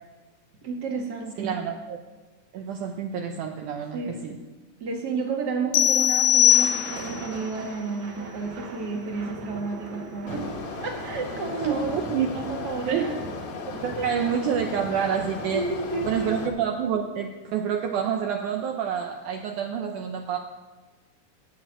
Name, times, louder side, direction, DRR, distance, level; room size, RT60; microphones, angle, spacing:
voice 1, 0.6-1.6 3.9-4.2 4.8-10.5 10.8-11.9 12.2-13.2 14.0-14.1 15.5-16.4, right 4 dB, 40° right, 0 dB, 1.8 m, -31 dB
voice 2, 1.4-2.0 2.5-4.4 11.6-12.3 12.9-13.1 13.8-15.7 16.0-20.4, right 8 dB, 75° right, 3 dB, 2.0 m, -28 dB
sound 1, 5.7-7.3, left 12 dB, 80° left, 2.4 m, -20 dB
Thunder, 6.1-16.8, right 3 dB, 60° right, 1.3 m, -40 dB
sound 2, 10.3-16.5, left 4 dB, 60° left, 2.4 m, -37 dB
12.0 x 6.5 x 9.0 m, 1.2 s
omnidirectional pair, 4.0 m